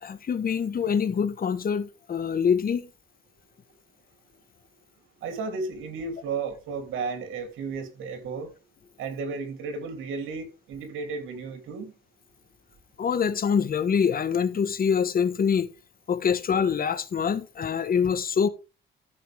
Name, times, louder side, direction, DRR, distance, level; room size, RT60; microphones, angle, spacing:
voice 1, 0.0-2.9 13.0-15.7 16.1-18.5, left 7 dB, 45° left, 1.4 m, -25 dB
voice 2, 5.2-8.5 9.0-11.9, right 4 dB, 85° right, 3.1 m, -33 dB
14.5 x 5.8 x 3.5 m
cardioid pair, 90°, 20 cm